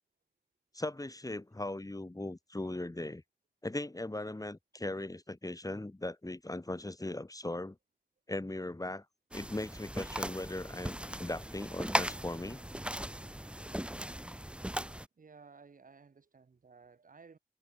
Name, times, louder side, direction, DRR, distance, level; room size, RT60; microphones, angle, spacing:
voice 1, 0.7-3.2 3.6-7.8 8.3-9.1 9.3-12.6, left 2 dB, 20° left, 3.7 m, -38 dB
sound 1, 9.3-15.1, right 1 dB, 5° right, 1.6 m, -38 dB
voice 2, 15.2-17.4, right 5 dB, 60° right, 4.2 m, -56 dB
cardioid pair, 40°, 16 cm